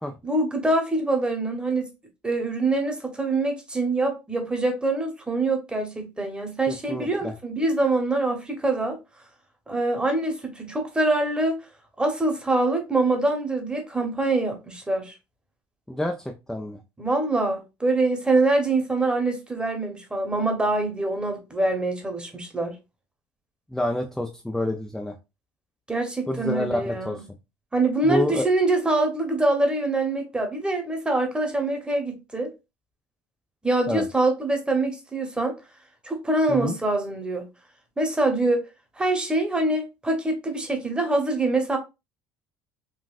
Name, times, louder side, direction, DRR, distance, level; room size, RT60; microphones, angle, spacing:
voice 1, 0.2-1.9 2.2-9.0 9.7-11.6 12.0-15.1 17.0-22.8 25.9-27.2 27.7-32.5 33.6-35.5 36.0-37.5 38.0-38.6 39.0-41.8, right 2 dB, 10° right, 1.1 m, -24 dB
voice 2, 6.7-7.3 15.9-16.8 23.7-25.2 26.3-27.2 28.0-28.4 33.9-34.1 36.5-36.8, left 1 dB, 5° left, 0.5 m, -28 dB
3.9 x 2.4 x 2.5 m
supercardioid pair, 90°, 8 cm